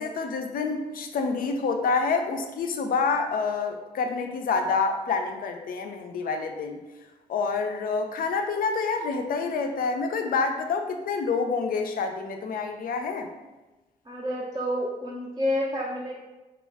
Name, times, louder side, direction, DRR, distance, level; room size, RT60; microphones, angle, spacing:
voice 1, 0.0-6.8 7.3-13.3, left 4 dB, 50° left, 5 dB, 0.4 m, -27 dB
voice 2, 14.1-16.2, left 1 dB, 20° right, -3 dB, 0.4 m, -29 dB
2.2 x 2.0 x 3.3 m, 1.1 s
hypercardioid pair, 40°, 19 cm